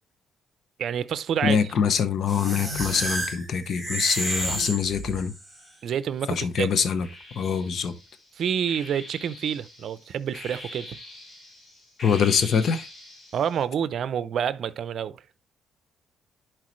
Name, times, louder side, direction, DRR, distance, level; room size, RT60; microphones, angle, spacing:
voice 1, 0.8-1.6 5.8-6.7 8.3-11.0 13.3-15.2, right 8 dB, 65° right, 0.7 m, -28 dB
voice 2, 1.4-5.3 6.3-7.1 7.3-7.9 12.0-12.9, left 7 dB, 60° left, 1.1 m, -24 dB
sound 1, 2.3-5.5, right 1 dB, 10° left, 3.1 m, -31 dB
sound 2, 5.6-6.4 7.0-13.6, left 1 dB, 45° left, 3.6 m, -44 dB
11.0 x 4.7 x 3.2 m
cardioid pair, 90°, 0 cm